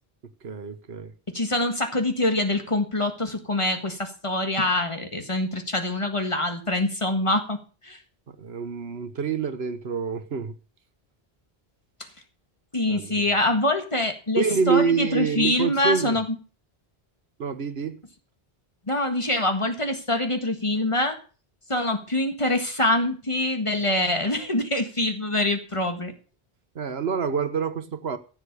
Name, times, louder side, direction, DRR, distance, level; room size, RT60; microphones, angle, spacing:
voice 1, 0.4-1.1 8.3-10.5 12.8-13.3 14.4-16.2 17.4-18.0 26.7-28.2, right 6 dB, 80° right, 1.4 m, -27 dB
voice 2, 1.3-8.0 12.7-16.2 18.9-21.2 21.7-26.1, left 1 dB, 30° left, 1.7 m, -25 dB
14.5 x 7.5 x 6.7 m
omnidirectional pair, 1.1 m